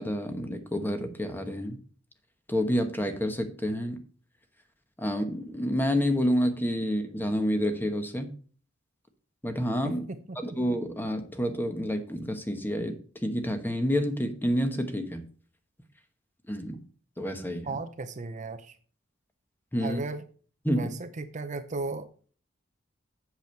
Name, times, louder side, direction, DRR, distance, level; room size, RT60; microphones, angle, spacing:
voice 1, 0.0-1.8 2.5-4.0 5.0-8.3 9.4-10.0 10.4-15.2 16.5-16.8 17.2-17.8 19.7-20.0 20.6-20.9, equal, 10° left, 7 dB, 1.2 m, -29 dB
voice 2, 17.6-18.8 19.8-20.2 20.7-22.1, right 3 dB, 40° right, 10 dB, 0.6 m, -35 dB
8.1 x 7.0 x 4.5 m, 0.42 s
head